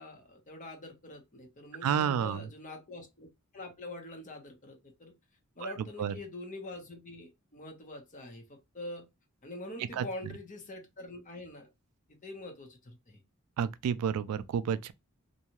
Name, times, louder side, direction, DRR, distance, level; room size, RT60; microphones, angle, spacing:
voice 1, 0.0-5.1 5.6-9.1 9.4-11.7 12.2-13.2, left 2 dB, 35° left, 0.8 m, -45 dB
voice 2, 1.8-2.5 5.6-5.7 6.0-6.1 9.9-10.1 13.6-14.9, right 8 dB, 85° right, 0.3 m, -30 dB
2.6 x 2.3 x 2.9 m
head